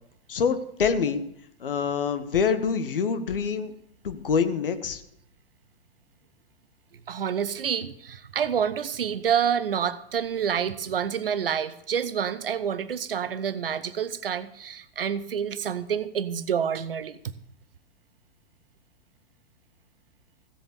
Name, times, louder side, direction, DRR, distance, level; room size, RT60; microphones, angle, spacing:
voice 1, 0.3-1.2 1.6-3.7 4.0-5.0, left 6 dB, 60° left, 1.4 m, -25 dB
voice 2, 7.1-17.3, right 8 dB, 65° right, 0.9 m, -28 dB
16.0 x 7.8 x 6.9 m
figure-of-eight pair, 105°, 31 cm